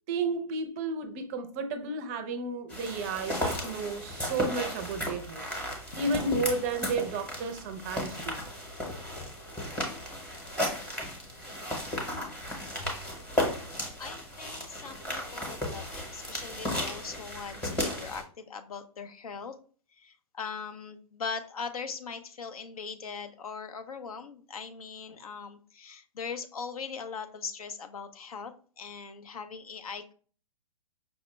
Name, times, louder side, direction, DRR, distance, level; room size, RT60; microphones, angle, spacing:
voice 1, 0.1-5.5 6.0-8.4, right 3 dB, 25° right, 0.4 m, -32 dB
sound 1, 2.7-18.2, left 1 dB, 5° left, 0.8 m, -35 dB
voice 2, 13.6-19.6 20.0-30.1, left 5 dB, 85° left, 0.6 m, -40 dB
5.4 x 2.1 x 3.0 m
hypercardioid pair, 150°, 18 cm